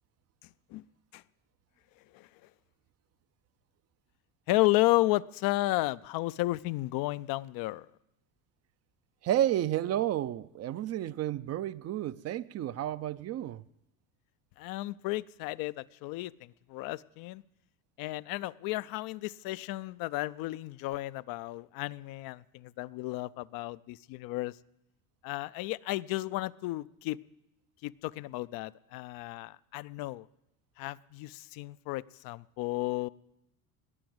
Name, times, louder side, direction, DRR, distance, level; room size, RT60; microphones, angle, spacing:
voice 1, 4.5-7.9 14.6-17.4 18.0-24.6 25.2-27.2 27.8-30.3 30.8-33.1, left 19 dB, 60° left, 0.5 m, -33 dB
voice 2, 9.2-13.6, right 12 dB, 40° right, 0.5 m, -31 dB
19.5 x 7.1 x 7.8 m
supercardioid pair, 90°, 41 cm